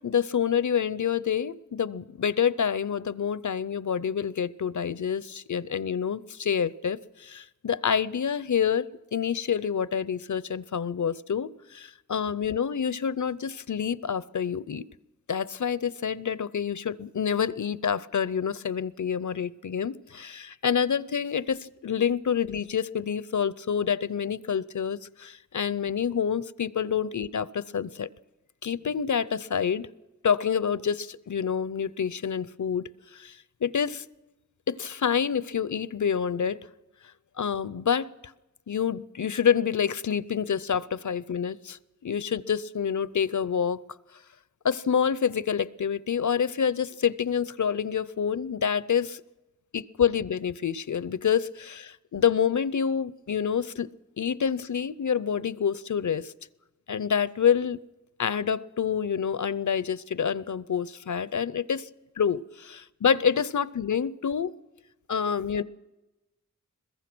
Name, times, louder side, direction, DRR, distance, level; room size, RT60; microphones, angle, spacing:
voice 1, 0.0-14.9 15.3-28.1 28.6-29.9 30.2-34.1 34.7-36.6 37.4-38.1 38.7-43.8 44.6-49.2 49.7-53.9 54.2-56.3 56.9-57.8 58.2-61.9 62.2-62.4 63.0-64.5 65.1-65.6, left 7 dB, 65° left, 0.6 m, -27 dB
22.5 x 21.0 x 6.1 m
wide cardioid pair, 80°, 32 cm